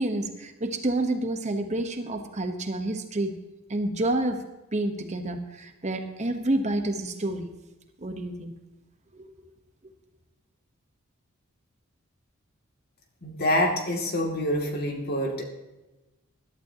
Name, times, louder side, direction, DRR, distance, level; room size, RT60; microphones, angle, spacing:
voice 1, 0.0-3.3 3.7-4.4 4.7-7.5 8.0-8.5 9.1-9.3, right 1 dB, 35° right, 6 dB, 1.1 m, -29 dB
voice 2, 13.2-15.4, left 1 dB, 45° left, 1 dB, 2.5 m, -26 dB
21.0 x 11.5 x 2.9 m, 1.0 s
head